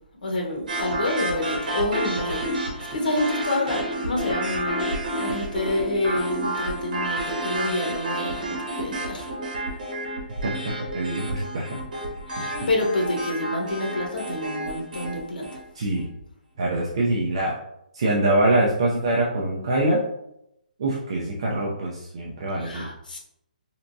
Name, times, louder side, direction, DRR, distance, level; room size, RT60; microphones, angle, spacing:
voice 1, 0.2-9.3 12.3-15.4 22.6-23.2, left 1 dB, 70° left, 0 dB, 1.0 m, -28 dB
sound 1, 0.7-15.7, right 1 dB, 60° right, 1.4 m, -30 dB
voice 2, 10.9-11.8 15.8-16.1 16.6-17.6 17.9-20.0 20.8-22.9, right 1 dB, 35° right, -4 dB, 0.5 m, -24 dB
3.4 x 2.8 x 2.6 m, 0.79 s
hypercardioid pair, 175°, 5 cm